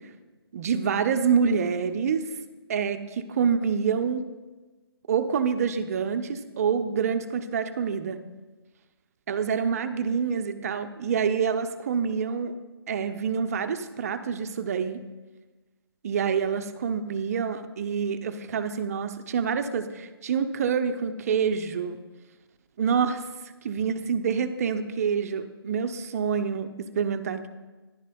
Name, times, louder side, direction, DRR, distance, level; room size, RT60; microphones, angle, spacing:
voice 1, 0.5-2.3 2.7-4.3 5.1-8.2 9.3-12.5 12.9-15.0 16.0-22.0 22.8-23.2 23.6-27.5, right 6 dB, 35° right, 9 dB, 0.6 m, -27 dB
14.0 x 11.0 x 2.3 m, 1.2 s
figure-of-eight pair, 150°, 13 cm